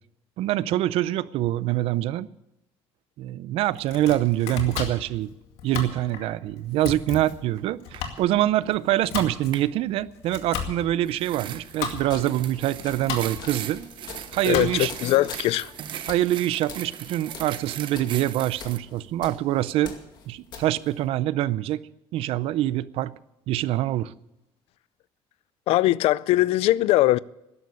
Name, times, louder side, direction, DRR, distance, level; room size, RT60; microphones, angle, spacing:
voice 1, 0.4-2.3 3.2-5.3 5.6-13.8 14.3-14.9 16.1-19.9 20.3-21.8 22.1-23.1 23.5-24.1, right 14 dB, 70° right, 0.6 m, -25 dB
Domestic sounds home sounds, 3.7-15.1, left 7 dB, 90° left, 2.2 m, -36 dB
sound 1, 7.6-7.7 7.9-8.3 9.5-9.7 11.1-18.8, right 10 dB, 50° right, 0.9 m, -38 dB
sound 2, 12.0-21.1, left 5 dB, 45° left, 2.2 m, -45 dB
voice 2, 14.4-15.7 25.7-27.2, left 16 dB, 70° left, 0.4 m, -21 dB
13.0 x 11.0 x 8.5 m
cardioid pair, 155°, 10 cm